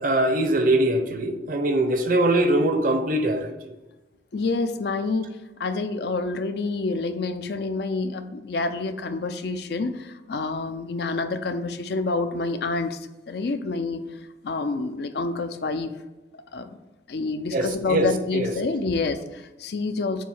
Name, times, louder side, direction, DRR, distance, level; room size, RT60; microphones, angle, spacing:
voice 1, 0.0-3.7 17.5-18.5, right 1 dB, 45° right, 7 dB, 0.6 m, -22 dB
voice 2, 4.3-13.0 13.3-14.0 14.4-15.9 16.5-16.7 17.1-20.2, left 3 dB, 55° left, 9 dB, 0.4 m, -28 dB
7.2 x 2.8 x 5.4 m, 1.1 s
head